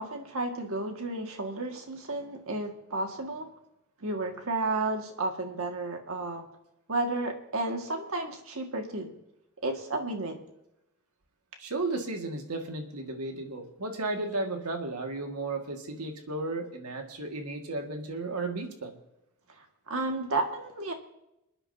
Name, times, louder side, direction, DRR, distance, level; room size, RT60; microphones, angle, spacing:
voice 1, 0.0-3.5 4.0-6.4 6.9-9.1 9.6-10.4 19.9-20.9, right 2 dB, 65° right, 4 dB, 1.9 m, -32 dB
voice 2, 11.6-19.0, right 2 dB, 90° right, 3 dB, 1.9 m, -34 dB
29.0 x 9.9 x 2.8 m, 0.86 s
head